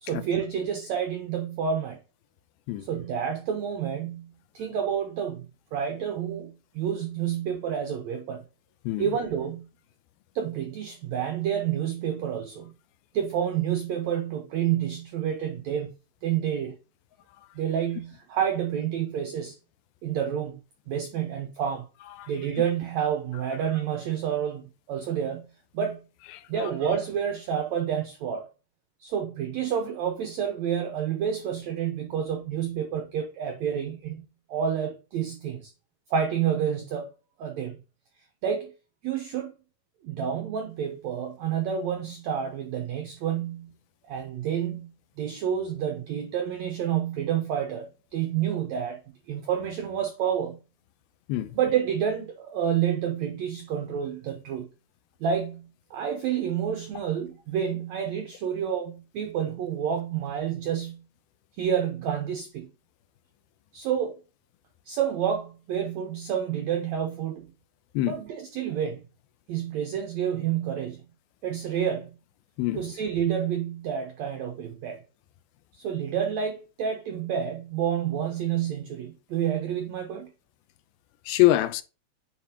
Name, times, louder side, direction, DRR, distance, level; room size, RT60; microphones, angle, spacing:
voice 1, 0.0-2.0 2.9-8.4 9.0-9.7 10.3-12.7 13.1-15.9 16.2-16.8 17.5-19.5 20.0-20.6 20.9-21.9 22.3-26.1 26.5-28.4 29.0-35.7 36.1-37.1 37.4-37.8 38.4-38.7 39.0-39.5 40.0-43.7 44.1-49.0 49.3-50.6 51.5-54.7 55.2-61.0 61.6-62.7 63.7-64.2 64.9-67.5 68.1-69.0 69.5-71.0 71.4-72.2 72.7-75.0 75.7-80.3, right 8 dB, 85° right, 1.5 m, -29 dB
voice 2, 81.3-81.8, left 16 dB, 90° left, 2.5 m, -23 dB
9.2 x 4.1 x 2.8 m
omnidirectional pair, 4.3 m